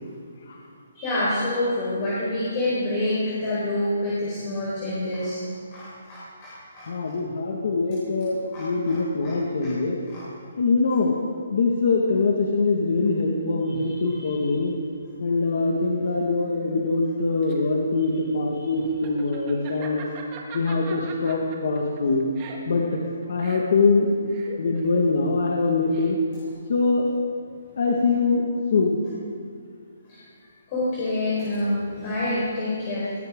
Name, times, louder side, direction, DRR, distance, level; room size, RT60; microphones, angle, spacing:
voice 1, 0.9-5.4 5.7-7.1 8.5-9.0 9.2-9.3 9.6-9.7 10.1-10.2 13.7-14.4 18.6-18.7 30.1-30.2 30.7-33.1, left 1 dB, 25° left, -8 dB, 4.6 m, -27 dB
voice 2, 6.9-10.0 10.6-11.2 11.5-14.7 15.2-20.1 20.5-22.3 22.7-23.0 23.3-26.2 26.7-27.1 27.8-28.4 28.7-29.0, left 3 dB, 55° left, -1 dB, 1.8 m, -23 dB
Laughter, 17.0-26.5, right 5 dB, 25° right, 1.9 m, -42 dB
21.5 x 16.0 x 3.8 m, 2.3 s
hypercardioid pair, 170°, 0 cm